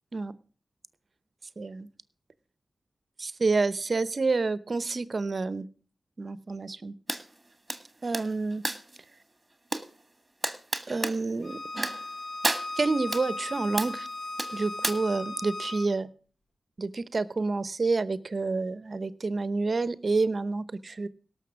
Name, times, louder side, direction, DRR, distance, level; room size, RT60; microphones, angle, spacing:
voice 1, 1.6-1.9 3.2-5.7 6.2-6.9 8.0-8.6 10.9-11.6 12.8-14.1 14.5-16.1 16.8-21.1, right 3 dB, 55° right, 17 dB, 0.8 m, -28 dB
sound 1, 7.1-7.2 7.7-9.0 9.7-9.9 10.4-11.2 11.7-12.1 12.4-13.2 13.8-14.0 14.4-14.9, right 2 dB, 25° right, 1.6 m, -31 dB
Bowed string instrument, 11.4-15.9, left 2 dB, 70° left, 1.2 m, -37 dB
17.5 x 6.5 x 6.2 m, 0.41 s
cardioid pair, 50°, 0 cm